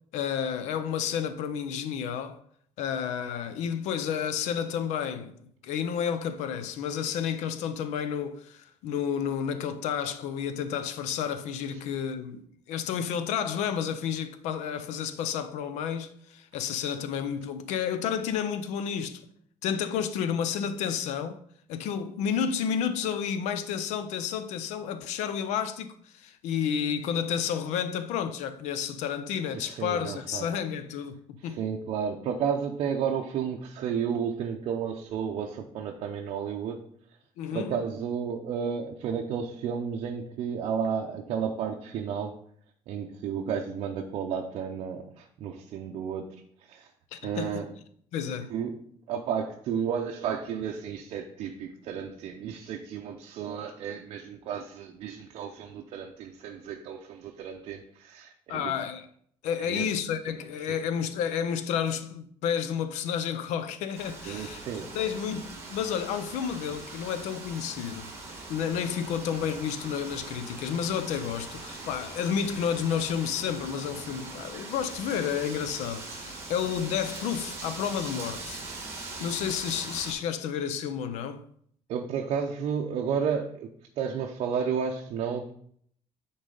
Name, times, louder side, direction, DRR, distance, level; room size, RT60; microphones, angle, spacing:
voice 1, 0.1-2.4 2.8-5.3 5.6-19.2 19.6-21.4 21.7-31.6 37.4-37.8 47.1-47.6 48.1-48.5 58.5-59.1 59.4-68.1 68.5-78.6 79.2-81.4, left 8 dB, 85° left, 0.6 m, -31 dB
voice 2, 29.5-30.5 31.4-36.8 37.5-42.4 42.9-46.9 47.2-47.7 48.5-48.8 49.1-58.7 59.6-59.9 60.7-60.8 64.2-65.2 81.9-83.7 84.0-85.5, right 7 dB, 55° right, 0.6 m, -32 dB
Wind, 63.9-80.1, right 3 dB, 25° right, 1.6 m, -41 dB
9.7 x 3.9 x 3.9 m
cardioid pair, 180°, 12 cm